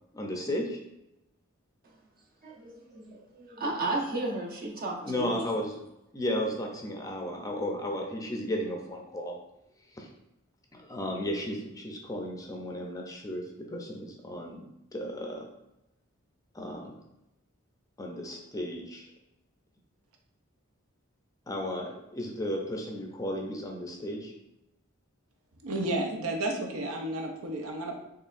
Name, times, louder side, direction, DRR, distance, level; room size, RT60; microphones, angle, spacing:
voice 1, 0.1-0.8 5.1-5.8 6.1-9.4 9.9-10.1 10.7-15.5 16.5-16.9 18.0-19.1 21.5-24.3, left 1 dB, 15° left, 1 dB, 0.5 m, -34 dB
voice 2, 2.4-5.5, right 2 dB, 45° right, -1 dB, 0.8 m, -34 dB
voice 3, 25.6-27.9, right 2 dB, 75° right, 3 dB, 0.6 m, -32 dB
4.5 x 3.1 x 2.5 m, 0.90 s
head